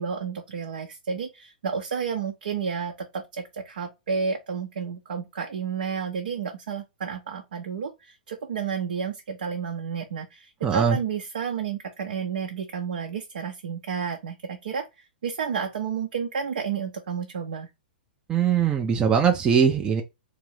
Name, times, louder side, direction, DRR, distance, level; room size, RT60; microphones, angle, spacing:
voice 1, 0.0-14.9 15.2-17.7, right 6 dB, 60° right, 0.7 m, -31 dB
voice 2, 10.6-11.0 18.3-20.0, right 7 dB, 15° right, 0.5 m, -21 dB
3.8 x 2.7 x 3.2 m
figure-of-eight pair, 110°, 5 cm